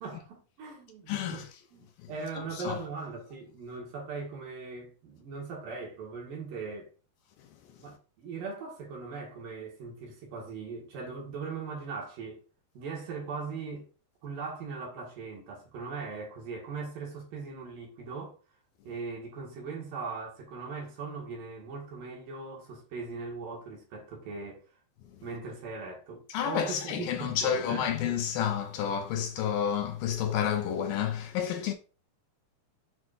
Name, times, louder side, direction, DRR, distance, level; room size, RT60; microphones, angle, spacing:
voice 1, 0.0-1.4 1.7-6.9 7.8-12.4 12.7-13.9 14.2-18.4 18.8-24.6 25.2-27.9, right 4 dB, 65° right, 3.1 m, -39 dB
voice 2, 1.1-1.4 2.0-2.1 2.5-2.8 26.3-31.7, left 9 dB, 80° left, 2.2 m, -30 dB
8.0 x 4.8 x 2.4 m
omnidirectional pair, 4.4 m